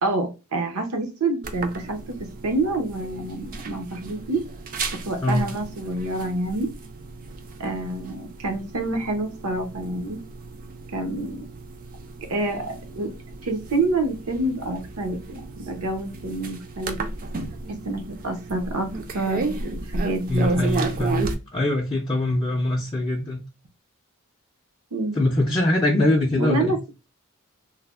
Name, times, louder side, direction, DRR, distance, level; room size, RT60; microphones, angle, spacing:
voice 1, 0.0-4.4 5.0-6.7 7.6-10.2 10.9-11.4 12.2-13.1 13.4-17.0 17.7-20.8 24.9-25.2 26.4-26.8, right 2 dB, 80° right, 0.7 m, -27 dB
sound 1, 1.4-21.3, right 3 dB, 40° right, 0.4 m, -34 dB
voice 2, 20.3-23.4 25.2-26.7, left 1 dB, 20° left, 0.4 m, -23 dB
3.2 x 2.0 x 2.3 m
head